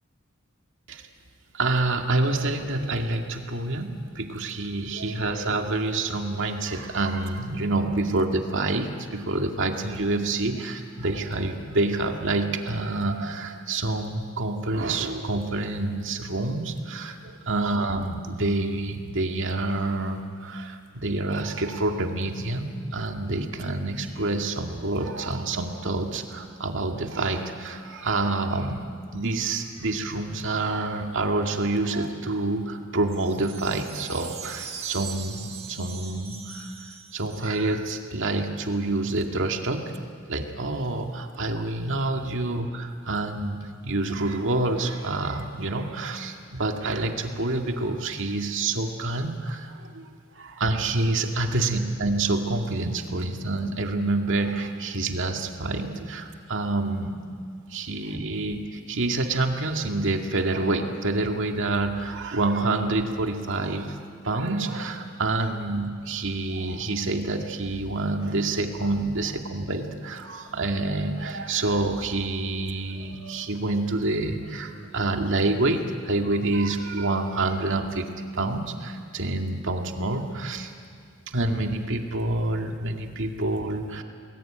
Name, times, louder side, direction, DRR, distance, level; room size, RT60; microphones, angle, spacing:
voice 1, 1.5-28.8 29.1-36.7 37.1-39.9 40.3-43.6 43.8-50.1 50.4-57.2 57.7-64.0 64.2-78.0 78.3-80.7 81.3-84.0, right 2 dB, 65° right, 4 dB, 2.2 m, -27 dB
sound 1, 33.1-37.8, right 6 dB, 30° right, 1.7 m, -40 dB
28.5 x 20.5 x 8.9 m, 2.2 s
head